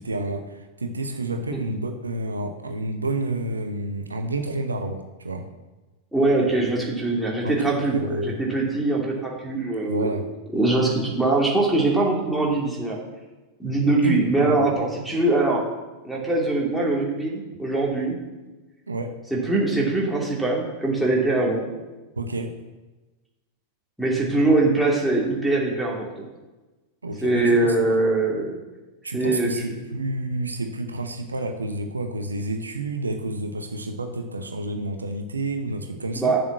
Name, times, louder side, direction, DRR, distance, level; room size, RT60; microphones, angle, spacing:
voice 1, 0.0-5.4 7.4-8.4 9.8-10.2 14.0-14.7 18.9-19.1 22.2-22.5 27.0-27.8 29.0-36.3, right 2 dB, 75° right, 6 dB, 0.8 m, -29 dB
voice 2, 6.1-10.2 10.5-13.0 13.6-15.6 16.0-18.2 19.3-21.7 24.0-26.1 27.2-28.6 29.1-29.8 36.2-36.4, right 2 dB, ahead, -4 dB, 2.7 m, -22 dB
7.2 x 6.7 x 7.4 m, 1.1 s
figure-of-eight pair, 90°, 0 cm